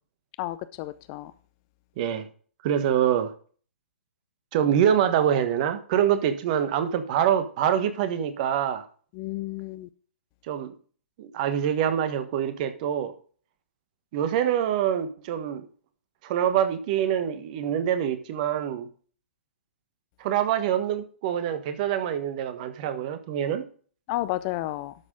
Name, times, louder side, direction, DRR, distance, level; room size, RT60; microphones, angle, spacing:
voice 1, 0.4-1.3 9.2-9.9 24.1-24.9, left 16 dB, 30° left, 0.5 m, -31 dB
voice 2, 2.0-2.3 2.6-3.3 4.5-8.8 10.5-10.7 11.2-13.1 14.1-15.7 16.2-18.9 20.2-23.7, right 9 dB, 35° right, 1.3 m, -25 dB
12.0 x 6.2 x 3.7 m
figure-of-eight pair, 125°, 7 cm